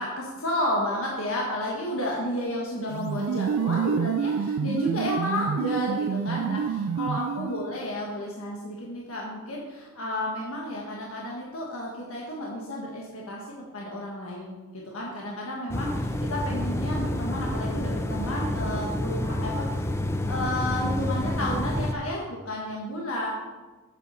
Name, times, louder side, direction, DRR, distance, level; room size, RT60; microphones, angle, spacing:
voice 1, 0.0-13.5 13.7-19.9 20.2-23.3, left 1 dB, 80° left, -3 dB, 1.5 m, -32 dB
sound 1, 2.9-7.8, right 7 dB, 85° right, 0.3 m, -28 dB
sound 2, 15.7-21.9, left 1 dB, 15° left, 0.6 m, -29 dB
8.2 x 7.0 x 5.5 m, 1.3 s
head